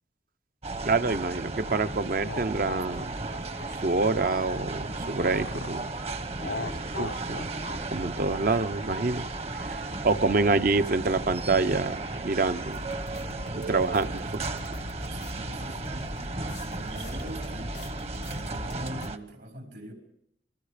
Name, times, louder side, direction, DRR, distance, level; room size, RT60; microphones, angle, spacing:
sound 1, 0.6-19.2, right 2 dB, 35° right, 1.1 m, -35 dB
voice 1, 0.8-3.2 3.8-5.9 6.5-6.7 7.0-7.5 7.9-9.2 9.5-12.8 13.6-14.4, right 3 dB, 50° right, 11 dB, 0.8 m, -27 dB
sound 2, 2.1-5.8 6.4-10.9, left 3 dB, 65° left, 0.8 m, -41 dB
sound 3, 12.7-19.1, left 2 dB, 85° left, 1.2 m, -42 dB
voice 2, 15.1-18.0 18.3-19.9, right 1 dB, 70° right, 2 dB, 4.9 m, -42 dB
29.0 x 22.5 x 5.1 m, 0.74 s
head